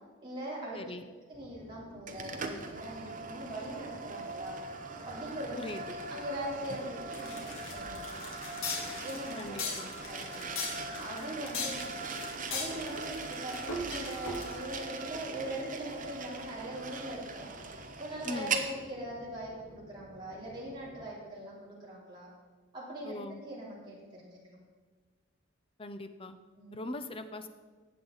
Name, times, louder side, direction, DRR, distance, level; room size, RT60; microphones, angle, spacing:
voice 1, 0.2-0.8 1.3-4.6 5.0-5.5 5.9-8.2 9.0-9.8 10.1-12.1 12.5-17.5 18.0-22.3 22.7-23.2 23.4-24.0 24.2-24.6 26.6-26.7, right 1 dB, 25° right, -7 dB, 3.5 m, -41 dB
voice 2, 0.7-1.1 5.6-6.0 9.3-9.9 18.2-18.6 23.0-23.4 25.8-26.4 26.7-27.5, left 2 dB, 25° left, 9 dB, 0.6 m, -40 dB
sound 1, 1.3-21.1, equal, 65° right, 2.8 m, -54 dB
sound 2, 2.1-18.7, right 4 dB, 40° right, 0.9 m, -40 dB
sound 3, 7.1-14.8, left 3 dB, 80° left, 2.1 m, -39 dB
18.5 x 7.7 x 4.0 m, 1.4 s
head